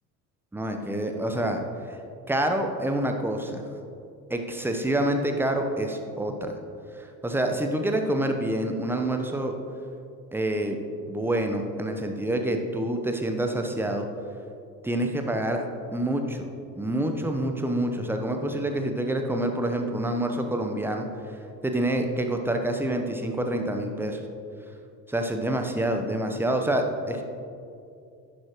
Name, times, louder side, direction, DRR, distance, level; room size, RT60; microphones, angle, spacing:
voice 1, 0.5-2.0 2.3-3.6 4.3-6.5 7.0-9.5 10.3-10.8 11.1-14.1 14.8-16.5 16.8-21.1 21.6-24.2 25.1-27.2, right 1 dB, 5° right, 4 dB, 0.9 m, -27 dB
11.0 x 10.5 x 3.1 m, 2.6 s
figure-of-eight pair, 60°, 50 cm